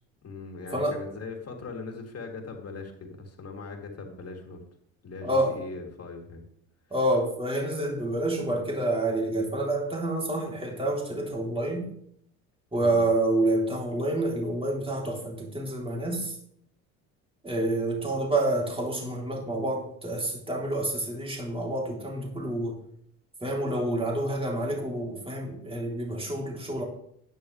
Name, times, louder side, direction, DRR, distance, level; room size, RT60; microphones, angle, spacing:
voice 1, 0.2-4.6 5.0-6.4 12.8-13.1, left 3 dB, 35° left, 2 dB, 3.2 m, -40 dB
voice 2, 5.2-5.6 6.9-11.9 12.7-16.3 17.4-22.8 23.4-26.8, right 1 dB, 15° right, -1 dB, 3.7 m, -28 dB
11.5 x 10.5 x 3.4 m, 0.69 s
hypercardioid pair, 65°, 42 cm